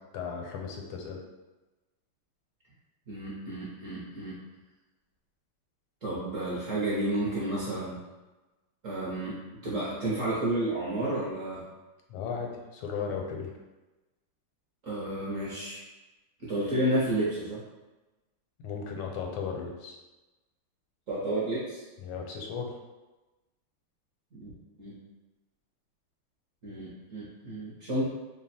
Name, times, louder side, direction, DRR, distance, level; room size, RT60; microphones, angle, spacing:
voice 1, 0.1-1.2 12.1-13.5 18.6-20.0 22.0-22.7, left 6 dB, 85° left, 1 dB, 1.6 m, -35 dB
voice 2, 3.1-4.4 6.0-8.0 8.8-11.6 14.8-15.8 16.4-17.6 21.1-21.8 24.3-24.5 24.8-25.0 26.6-28.0, right 1 dB, 55° right, -8 dB, 0.9 m, -31 dB
3.4 x 2.2 x 4.0 m, 1.1 s
omnidirectional pair, 2.4 m